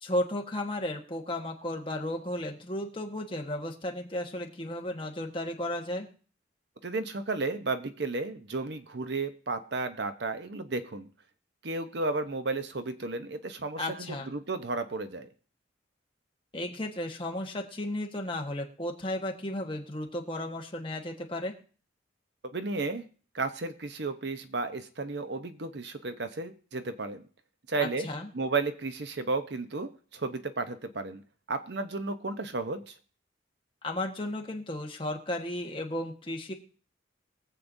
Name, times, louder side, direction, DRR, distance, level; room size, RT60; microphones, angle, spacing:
voice 1, 0.0-6.1 13.8-14.3 16.5-21.5 27.8-28.3 33.8-36.5, left 1 dB, 25° left, 2 dB, 1.3 m, -34 dB
voice 2, 6.8-11.1 11.6-15.3 22.5-23.0 23.3-27.2 27.7-28.1 28.3-31.2 31.5-32.9, right 3 dB, 60° right, 9 dB, 0.8 m, -33 dB
23.0 x 7.6 x 2.7 m, 0.41 s
head